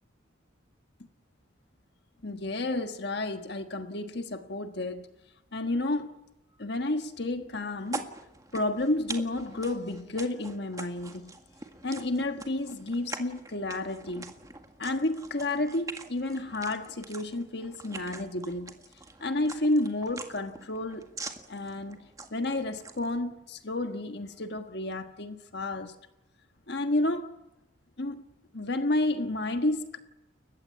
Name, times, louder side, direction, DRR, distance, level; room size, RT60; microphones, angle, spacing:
voice 1, 2.2-5.1 5.5-6.1 6.6-8.1 8.5-11.3 11.8-14.3 14.8-18.8 19.2-21.1 21.5-22.0 22.3-26.0 26.7-27.3 28.0-28.2 28.5-30.0, left 2 dB, 55° left, 1.5 m, -31 dB
sound 1, 7.8-23.2, right 3 dB, 15° right, 1.8 m, -44 dB
30.0 x 15.0 x 8.2 m
head